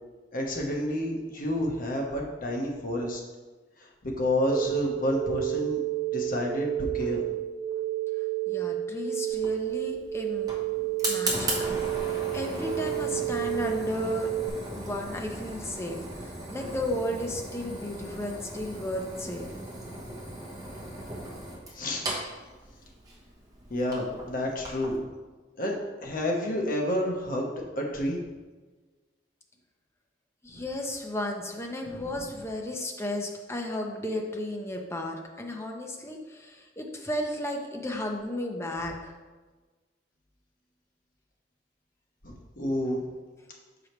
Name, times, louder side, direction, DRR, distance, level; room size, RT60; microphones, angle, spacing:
voice 1, 0.3-3.2 4.0-5.8 6.1-7.2 21.7-22.0 23.7-25.0 25.6-28.3 30.5-30.6 31.8-32.2 42.2-43.1, left 1 dB, 50° left, 0 dB, 1.0 m, -29 dB
sound 1, 4.5-14.5, right 13 dB, 90° right, 0.4 m, -31 dB
voice 2, 8.5-10.5 11.1-11.8 12.0-14.3 14.7-19.5 30.4-39.1, left 1 dB, 15° left, 2 dB, 0.6 m, -34 dB
Fire, 9.3-25.0, right 1 dB, 20° right, 1.0 m, -37 dB
6.2 x 4.9 x 3.1 m, 1.3 s
head